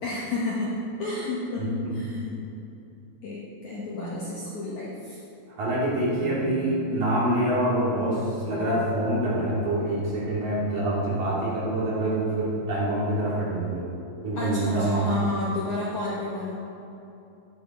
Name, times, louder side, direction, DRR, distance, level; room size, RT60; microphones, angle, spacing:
voice 1, 0.0-2.4 3.2-5.2 14.4-16.6, left 2 dB, 60° left, -6 dB, 2.2 m, -31 dB
voice 2, 1.6-1.9 3.9-4.1 5.6-13.9 14.2-15.1, right 1 dB, 55° right, -8 dB, 4.4 m, -26 dB
13.5 x 11.0 x 4.5 m, 2.9 s
omnidirectional pair, 5.1 m